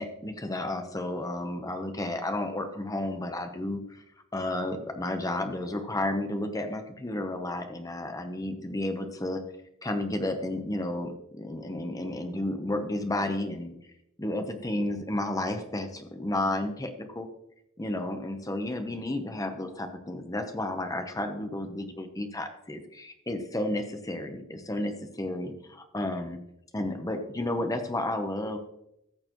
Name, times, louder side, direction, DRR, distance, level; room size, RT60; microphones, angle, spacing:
voice 1, 0.0-4.0 4.3-9.4 9.8-13.7 14.2-17.3 17.8-26.4 26.7-28.6, left 1 dB, 15° left, 6 dB, 0.9 m, -32 dB
14.5 x 6.7 x 3.0 m, 0.80 s
head